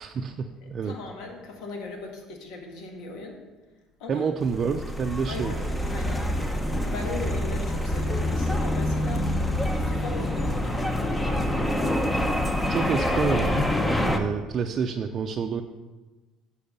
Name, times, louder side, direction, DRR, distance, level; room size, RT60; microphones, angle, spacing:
voice 1, 0.0-0.9 4.1-5.5 12.7-13.7 14.0-15.6, right 6 dB, 45° right, 4 dB, 0.5 m, -28 dB
voice 2, 0.6-3.4 4.0-4.3 5.3-5.6 5.9-6.3 6.9-9.3 9.8-11.3, left 3 dB, 75° left, 2 dB, 1.7 m, -38 dB
sound 1, 4.4-14.2, left 1 dB, 10° left, 0.9 m, -26 dB
8.6 x 4.8 x 6.8 m, 1.2 s
supercardioid pair, 95°, 0 cm